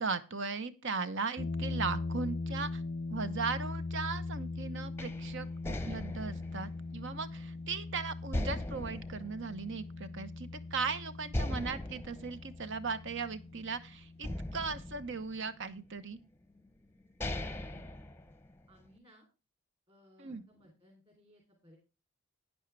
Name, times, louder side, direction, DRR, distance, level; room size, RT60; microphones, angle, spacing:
voice 1, 0.0-2.8 3.1-16.2 20.2-20.4, right 4 dB, 55° right, 12 dB, 0.9 m, -38 dB
sound 1, 1.4-14.5, left 3 dB, 45° left, 0.6 m, -40 dB
sound 2, 5.0-7.8 8.3-10.3 10.6-10.7 11.3-13.7 14.2-15.8 16.6-16.7 17.0-18.8, left 1 dB, 10° left, 0.8 m, -40 dB
voice 2, 17.5-17.9 18.7-19.3 19.9-21.8, equal, 25° right, 1 dB, 3.1 m, -62 dB
11.0 x 9.6 x 3.3 m, 0.31 s
head